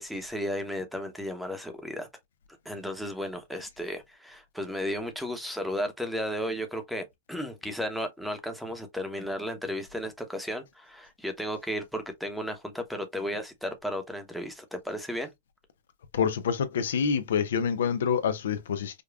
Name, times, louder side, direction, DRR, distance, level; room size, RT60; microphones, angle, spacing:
voice 1, 0.0-2.1 2.6-15.3, equal, ahead, 0.8 m, -34 dB
voice 2, 16.1-19.0, left 7 dB, 80° left, 0.6 m, -27 dB
5.0 x 2.3 x 2.4 m
hypercardioid pair, 135°, 0 cm